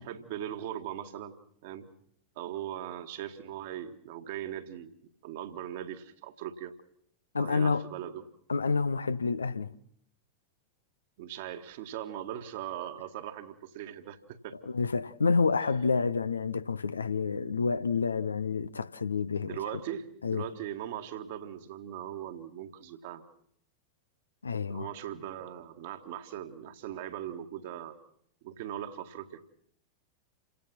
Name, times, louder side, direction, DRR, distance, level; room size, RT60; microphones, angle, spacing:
voice 1, 0.0-1.4 1.6-1.9 2.4-4.9 5.2-6.8 7.4-8.3 11.2-14.6 19.4-23.2 24.7-28.0 28.4-29.4, right 11 dB, 50° right, 1.9 m, -39 dB
voice 2, 7.3-7.9 8.5-9.7 14.7-19.6 20.2-20.5 24.4-24.9, left 4 dB, 75° left, 0.8 m, -28 dB
29.0 x 17.5 x 6.0 m
figure-of-eight pair, 90°, 0 cm